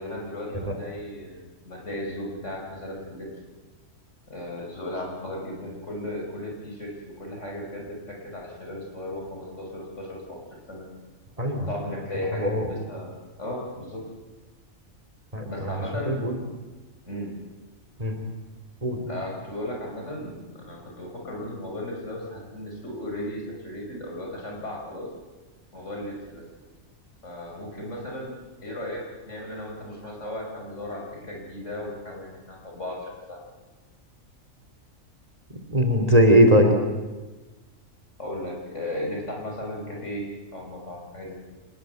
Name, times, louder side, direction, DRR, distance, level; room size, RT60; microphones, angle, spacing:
voice 1, 0.0-3.3 4.3-10.4 10.7-10.8 11.7-13.1 13.4-14.0 15.4-16.3 17.1-17.3 19.1-25.1 25.7-26.4 27.2-28.3 28.6-33.4 38.2-41.3, left 1 dB, 60° left, -1 dB, 5.9 m, -35 dB
voice 2, 11.4-11.7 12.3-12.7 15.3-16.4 18.0-18.2 18.8-19.1 35.5-36.7, equal, 25° right, 4 dB, 3.1 m, -21 dB
26.0 x 19.5 x 7.8 m, 1.2 s
omnidirectional pair, 1.4 m